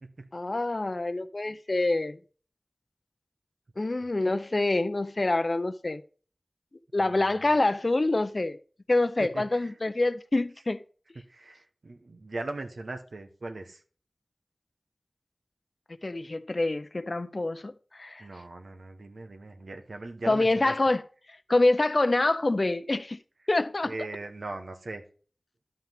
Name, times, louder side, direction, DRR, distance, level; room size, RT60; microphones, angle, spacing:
voice 1, 0.3-2.2 3.8-6.0 6.9-8.6 8.9-10.8 16.0-18.3 20.3-21.0 21.5-23.2 23.5-23.9, left 2 dB, 55° left, 0.5 m, -26 dB
voice 2, 7.0-7.5 9.2-9.8 11.1-13.8 18.2-20.7 23.8-25.0, right 2 dB, 85° right, 1.0 m, -39 dB
11.5 x 5.7 x 3.5 m
wide cardioid pair, 45°, 0 cm